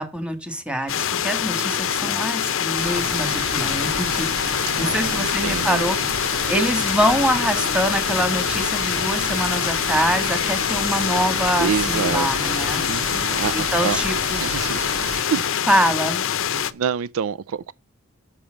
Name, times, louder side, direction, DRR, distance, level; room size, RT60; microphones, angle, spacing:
voice 1, 0.0-6.0 6.5-12.8 13.5-14.4 15.7-16.3, equal, 5° right, 1.6 m, -24 dB
sound 1, 0.9-16.7, left 9 dB, 65° left, 0.7 m, -24 dB
Water / Toilet flush, 1.3-6.3 6.8-6.9, right 1 dB, 25° right, 4.3 m, -45 dB
sound 2, 2.8-15.2, right 4 dB, 85° right, 1.9 m, -32 dB
voice 2, 4.6-5.8 11.6-14.0 14.3-14.9 15.3-15.5 16.5-17.7, right 7 dB, 70° right, 0.4 m, -28 dB
7.1 x 6.9 x 6.3 m
head